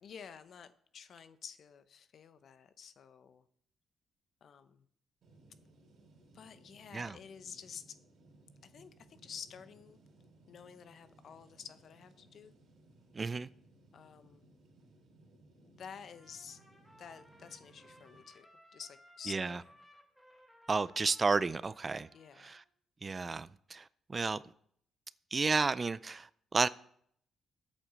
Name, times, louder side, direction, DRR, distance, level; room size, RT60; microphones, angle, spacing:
voice 1, 0.0-3.4 4.4-4.9 6.3-8.0 8.6-10.0 10.5-12.5 13.9-14.5 15.6-16.6 17.0-18.5 18.7-19.7 22.1-22.5, left 7 dB, 60° left, 0.8 m, -50 dB
sound 1, 5.2-18.2, right 2 dB, 65° right, 3.5 m, -62 dB
voice 2, 13.1-13.5 19.3-19.6 20.7-22.1 22.4-22.6 23.0-24.4 25.3-26.7, right 4 dB, 30° right, 0.4 m, -32 dB
Trumpet, 16.1-22.7, equal, ahead, 1.9 m, -62 dB
8.6 x 7.9 x 6.9 m
cardioid pair, 90°, 0 cm